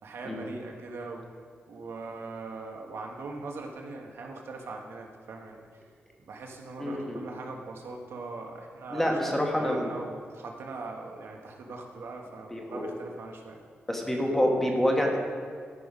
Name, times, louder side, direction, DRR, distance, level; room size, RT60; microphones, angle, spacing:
voice 1, 0.0-1.3 1.7-5.7 6.2-13.6, right 3 dB, 75° right, 1 dB, 1.3 m, -41 dB
voice 2, 6.8-7.2 8.9-9.9 12.5-13.0 13.9-15.2, equal, 5° left, 0 dB, 1.3 m, -27 dB
13.5 x 5.6 x 5.4 m, 2.1 s
wide cardioid pair, 175°, 4 cm